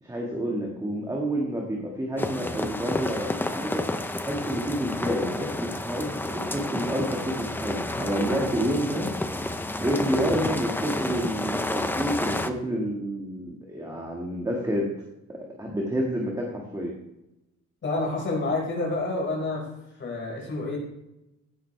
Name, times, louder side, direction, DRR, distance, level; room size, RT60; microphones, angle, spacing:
voice 1, 0.0-9.1 9.8-14.9 15.6-16.9, equal, 10° right, -2 dB, 1.8 m, -29 dB
sound 1, 2.2-12.5, left 1 dB, 5° left, 0.6 m, -30 dB
voice 2, 17.8-19.7 20.0-20.8, left 2 dB, 40° left, -2 dB, 5.1 m, -28 dB
16.0 x 9.5 x 3.4 m, 0.91 s
wide cardioid pair, 170°, 30 cm